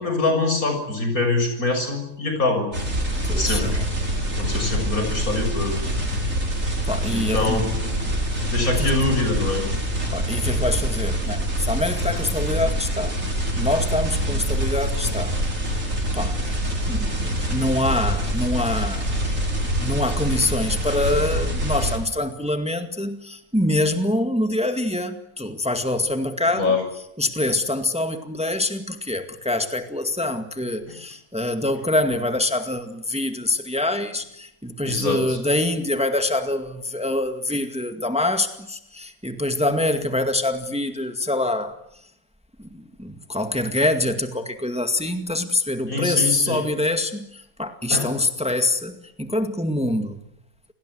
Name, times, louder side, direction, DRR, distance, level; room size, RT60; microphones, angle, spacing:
voice 1, 0.0-2.7 3.4-3.8 4.4-5.8 7.1-8.1 8.5-9.7 26.5-26.8 30.9-31.0 34.9-35.4 45.9-46.6 47.9-48.1, left 3 dB, 85° left, 5 dB, 7.2 m, -24 dB
sound 1, 2.7-22.0, equal, 65° right, 5.8 m, -25 dB
voice 2, 3.2-3.9 6.8-7.7 8.8-8.9 10.1-15.8 16.1-16.4 16.9-19.3 19.8-26.7 27.2-41.8 42.6-50.2, left 1 dB, 5° right, 7 dB, 2.0 m, -25 dB
28.5 x 19.0 x 9.6 m, 0.77 s
omnidirectional pair, 1.5 m